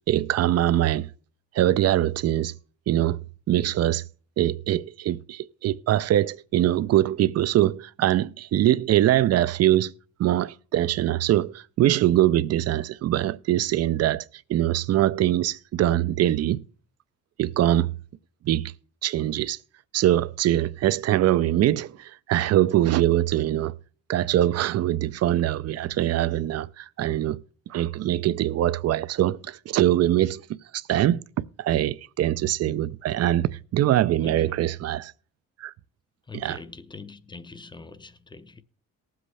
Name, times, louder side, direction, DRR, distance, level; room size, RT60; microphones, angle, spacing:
voice 1, 0.1-1.1 1.5-2.5 2.9-3.2 3.5-4.0 4.4-9.9 10.2-14.2 14.5-16.6 17.4-17.9 18.4-18.7 19.0-19.6 19.9-23.7 24.1-27.4 27.7-30.4 30.7-31.2 31.6-35.1 35.6-35.7 36.3-36.6, right 13 dB, 50° right, 0.4 m, -23 dB
voice 2, 34.2-34.6 36.3-38.6, left 4 dB, 15° left, 0.6 m, -43 dB
19.0 x 7.8 x 3.3 m
cardioid pair, 115°, 33 cm